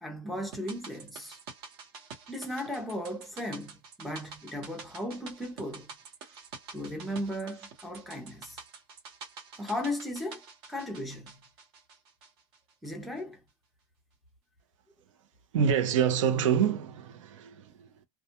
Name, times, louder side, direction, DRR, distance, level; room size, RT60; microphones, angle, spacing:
voice 1, 0.0-1.4 2.3-5.9 6.7-8.6 9.6-10.4 10.7-11.4 12.8-13.4, left 1 dB, ahead, 0.5 m, -36 dB
sound 1, 0.5-12.9 13.2-13.3, right 5 dB, 45° right, 0.9 m, -48 dB
voice 2, 15.5-18.0, right 8 dB, 65° right, 0.7 m, -27 dB
2.3 x 2.2 x 2.8 m
supercardioid pair, 175°, 17 cm